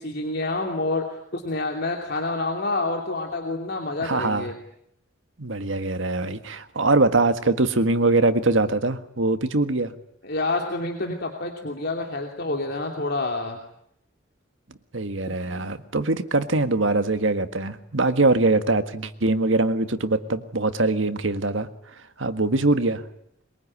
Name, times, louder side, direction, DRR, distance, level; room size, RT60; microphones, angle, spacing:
voice 1, 0.0-4.5 10.2-13.6, left 2 dB, 55° left, 2 dB, 2.8 m, -28 dB
voice 2, 4.0-4.5 5.4-9.9 14.9-21.7 22.2-23.0, right 2 dB, 75° right, 9 dB, 1.7 m, -22 dB
23.0 x 22.0 x 9.8 m, 0.77 s
head